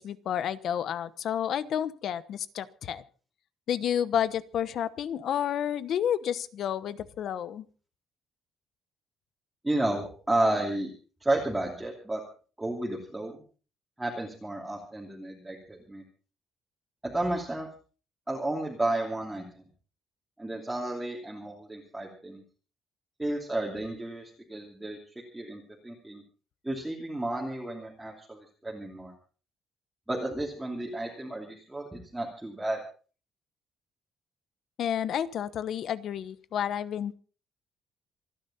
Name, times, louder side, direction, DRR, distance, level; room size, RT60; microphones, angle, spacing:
voice 1, 0.0-3.0 3.7-7.7 34.8-37.1, left 9 dB, 55° left, 16 dB, 1.0 m, -30 dB
voice 2, 9.6-10.9 11.2-12.2 12.6-13.4 14.0-16.0 17.0-17.7 18.3-19.6 20.4-22.4 23.2-25.0 25.3-26.2 26.6-29.1 30.1-32.8, right 1 dB, 5° right, -2 dB, 2.8 m, -32 dB
27.0 x 10.5 x 4.2 m, 0.39 s
cardioid pair, 155°, 0 cm